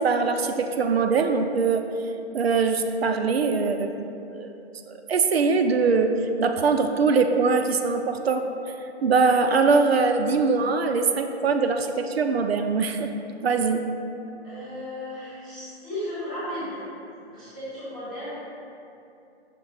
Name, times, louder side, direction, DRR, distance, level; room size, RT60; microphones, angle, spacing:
voice 1, 0.0-1.8 2.3-4.0 4.3-4.5 4.9-8.4 9.0-13.1 13.4-14.0, right 4 dB, 65° right, 6 dB, 0.5 m, -22 dB
voice 2, 14.4-16.8 17.2-18.3, left 1 dB, 5° left, -16 dB, 0.5 m, -35 dB
5.9 x 3.7 x 5.3 m, 2.7 s
hypercardioid pair, 175°, 34 cm